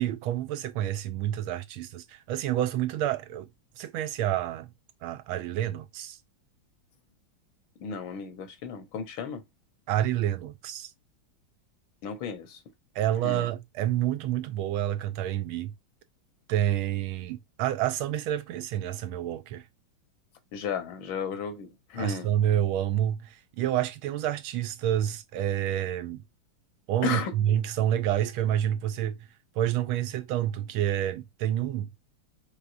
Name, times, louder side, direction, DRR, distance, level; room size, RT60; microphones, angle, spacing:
voice 1, 0.0-3.5 3.8-4.7 5.0-6.2 9.9-10.9 12.9-15.7 16.5-19.7 22.0-26.2 26.9-29.3 29.5-31.9, right 11 dB, 85° right, 1.4 m, -28 dB
voice 2, 7.8-9.4 12.0-12.6 13.2-13.5 20.5-22.3 27.0-27.3, left 6 dB, 75° left, 1.7 m, -34 dB
4.8 x 3.5 x 2.5 m
omnidirectional pair, 2.3 m